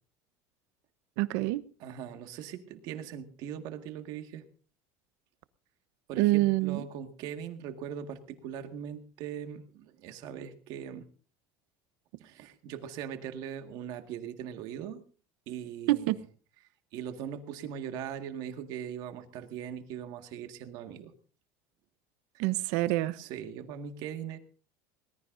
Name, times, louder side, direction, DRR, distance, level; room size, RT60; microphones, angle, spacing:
voice 1, 1.2-1.6 6.2-6.8 15.9-16.2 22.4-23.2, right 18 dB, 70° right, 0.9 m, -26 dB
voice 2, 1.8-4.5 6.1-11.1 12.2-15.0 15.5-16.2 16.9-21.1 23.1-24.4, right 9 dB, 50° right, 1.9 m, -40 dB
21.5 x 20.0 x 2.7 m
cardioid pair, 175°, 9 cm